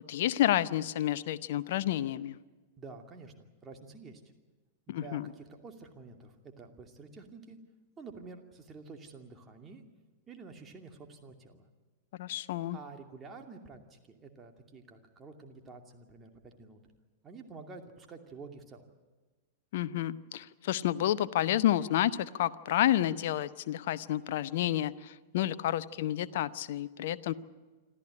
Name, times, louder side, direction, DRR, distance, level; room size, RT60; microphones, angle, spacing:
voice 1, 0.1-2.4 4.9-5.3 12.2-12.8 19.7-27.3, left 12 dB, 55° left, 16 dB, 0.7 m, -30 dB
voice 2, 2.8-3.3 3.6-4.2 4.9-7.6 8.0-9.8 10.3-11.6 12.7-16.8 17.2-18.9, right 4 dB, 20° right, 3 dB, 2.6 m, -49 dB
26.5 x 13.5 x 10.0 m, 1.3 s
figure-of-eight pair, 95°, 0 cm